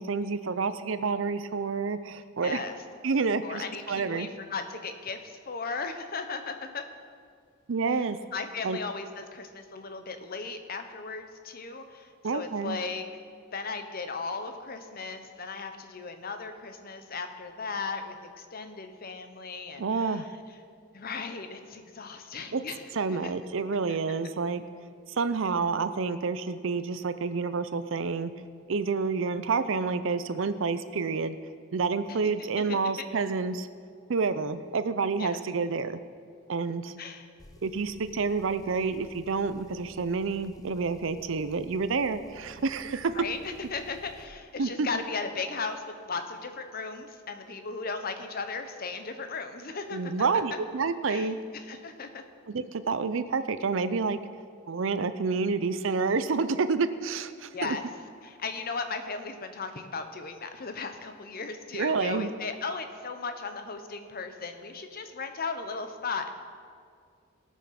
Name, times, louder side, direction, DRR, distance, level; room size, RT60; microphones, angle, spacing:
voice 1, 0.0-2.6 3.0-4.3 7.7-8.2 8.6-8.8 12.2-12.8 19.8-20.3 22.5-22.6 22.9-24.6 25.1-28.3 28.7-31.4 31.7-33.7 34.1-36.0 36.5-36.9 37.6-43.1 44.6-44.9 49.9-51.4 52.5-54.2 54.7-57.8 61.7-62.3, right 4 dB, 65° right, 12 dB, 0.5 m, -29 dB
voice 2, 2.4-2.7 3.4-6.8 7.9-8.0 8.3-13.0 13.5-20.2 20.9-23.3 23.9-24.0 32.7-32.8 35.2-35.4 37.0-37.3 43.2-50.4 51.1-52.2 57.5-57.8 58.2-66.3, left 4 dB, 45° left, 7 dB, 0.9 m, -36 dB
Engine, 37.4-44.3, left 2 dB, 15° left, 0.6 m, -54 dB
17.5 x 6.4 x 5.8 m, 2.1 s
head